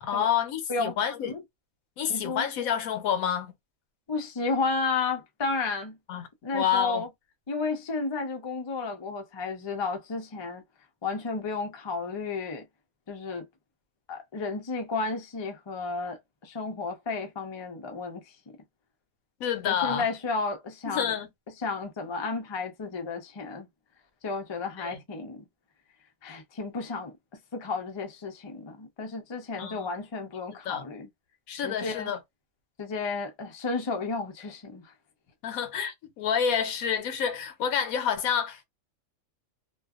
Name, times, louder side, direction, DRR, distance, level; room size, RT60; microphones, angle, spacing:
voice 1, 0.0-1.3 2.0-3.5 6.1-6.3 6.5-7.0 19.4-20.0 20.9-21.3 24.8-25.0 29.6-29.9 30.7-30.8 31.5-32.2 35.4-38.6, left 8 dB, 85° left, 1.1 m, -28 dB
voice 2, 2.1-2.5 4.1-6.0 6.4-7.1 7.5-10.6 11.0-12.6 13.1-13.5 14.1-18.2 19.6-21.1 21.6-23.7 24.2-25.4 26.2-27.1 27.5-31.1 31.6-32.1 32.8-34.9, left 4 dB, 40° left, 0.4 m, -32 dB
2.5 x 2.3 x 2.4 m
omnidirectional pair, 1.4 m